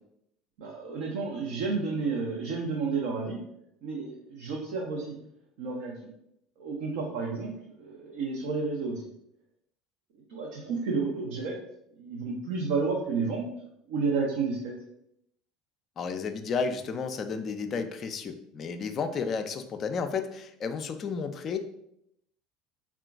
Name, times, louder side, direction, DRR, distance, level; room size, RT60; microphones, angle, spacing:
voice 1, 0.6-3.4 3.8-5.2 5.6-6.1 6.6-7.5 7.8-9.1 10.3-11.6 11.9-13.5 13.9-14.7, right 4 dB, 60° right, -2 dB, 0.6 m, -31 dB
voice 2, 16.0-21.6, left 5 dB, 35° left, 8 dB, 0.4 m, -32 dB
3.6 x 2.4 x 3.5 m, 0.76 s
figure-of-eight pair, 65°, 0 cm